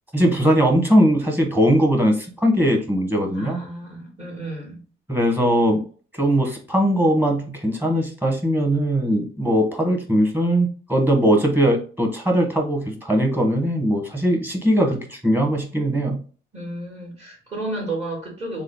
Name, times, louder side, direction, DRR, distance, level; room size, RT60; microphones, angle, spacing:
voice 1, 0.1-3.6 5.1-5.8 6.1-16.2, equal, 10° right, 1.3 m, -20 dB
voice 2, 3.3-4.8 16.5-18.6, right 2 dB, 35° right, 1.9 m, -32 dB
3.3 x 2.2 x 3.7 m
cardioid pair, 90°, 20 cm